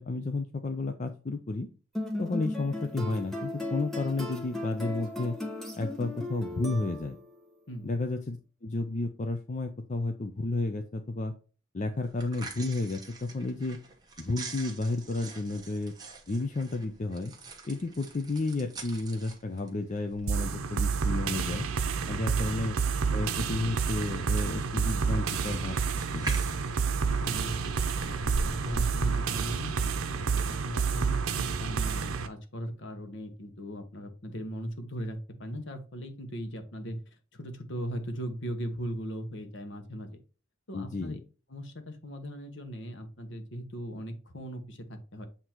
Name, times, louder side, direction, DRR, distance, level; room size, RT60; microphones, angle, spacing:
voice 1, 0.0-1.7 2.2-5.3 5.7-7.2 7.8-11.3 11.7-13.8 14.2-15.9 16.3-17.3 17.6-21.7 22.1-22.8 23.1-26.4 40.7-41.2, left 2 dB, 35° left, 5 dB, 0.5 m, -32 dB
sound 1, 1.9-7.3, left 2 dB, ahead, 1.2 m, -36 dB
sound 2, 12.0-29.9, right 2 dB, 20° right, 1.0 m, -45 dB
sound 3, 20.3-32.3, right 5 dB, 85° right, 0.7 m, -29 dB
voice 2, 27.2-40.2 40.7-41.2 41.5-45.3, equal, 55° left, 6 dB, 1.1 m, -39 dB
7.8 x 2.9 x 4.4 m, 0.35 s
head